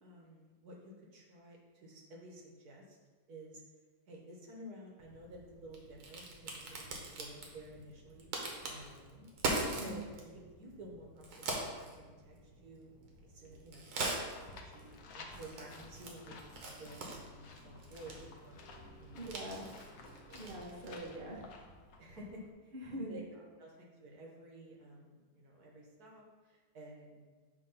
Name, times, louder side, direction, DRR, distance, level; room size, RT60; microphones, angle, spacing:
voice 1, 0.0-3.0 3.3-3.6 4.1-8.3 8.6-9.3 9.7-12.9 13.2-13.9 14.6-16.4 16.6-18.7 19.0-19.6 20.1-20.2 22.0-27.3, right 1 dB, 55° right, -1 dB, 1.4 m, -52 dB
Crack, 5.0-21.1, right 2 dB, 75° right, 1.9 m, -43 dB
sound 1, 14.2-22.5, left 3 dB, 60° left, 1.0 m, -54 dB
voice 2, 19.1-19.6 19.9-20.0 20.3-21.5 22.7-23.2, right 1 dB, 40° right, -3 dB, 0.8 m, -43 dB
8.5 x 2.9 x 5.5 m, 1.4 s
omnidirectional pair, 2.2 m